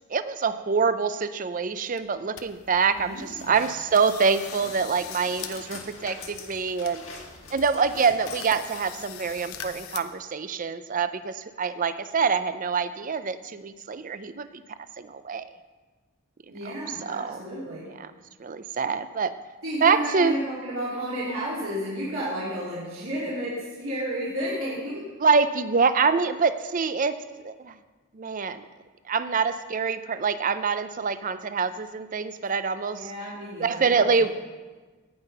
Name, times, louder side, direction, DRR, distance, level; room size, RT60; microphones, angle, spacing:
voice 1, 0.1-7.0 7.5-14.6 15.0-15.4 16.6-16.7 17.0-17.4 18.0-18.1 18.4-19.3 19.8-20.4 25.2-27.2 27.4-27.7 28.1-28.6 29.1-33.1 33.6-34.3, right 5 dB, 40° right, 12 dB, 0.5 m, -25 dB
sound 1, 1.6-1.7 2.0-2.5 2.9-3.0 3.4-3.6 3.9-5.5 5.8-5.9 6.4-6.5 6.8-7.4 7.7-7.8 8.2-10.0, left 9 dB, 80° left, 0.8 m, -41 dB
sound 2, 2.5-9.8, left 4 dB, 65° left, 1.8 m, -44 dB
voice 2, 2.9-3.6 16.5-17.9 19.6-25.0 32.9-34.0, equal, 70° right, -8 dB, 3.1 m, -32 dB
17.5 x 5.8 x 5.5 m, 1.3 s
head